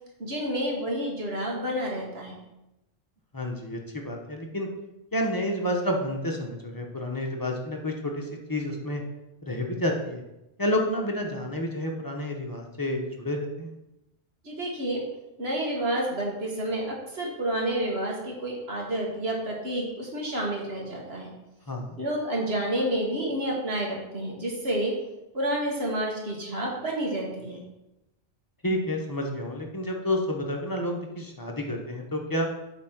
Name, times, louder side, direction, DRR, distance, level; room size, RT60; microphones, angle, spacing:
voice 1, 0.2-2.3 14.4-15.0 15.4-21.3 22.0-24.9 25.3-27.6, right 1 dB, 60° right, -2 dB, 2.1 m, -29 dB
voice 2, 3.3-4.7 5.1-9.0 9.4-10.2 10.6-13.7 21.7-22.0 28.6-32.5, left 1 dB, 20° left, 1 dB, 1.1 m, -30 dB
8.4 x 4.0 x 6.0 m, 0.92 s
omnidirectional pair, 1.2 m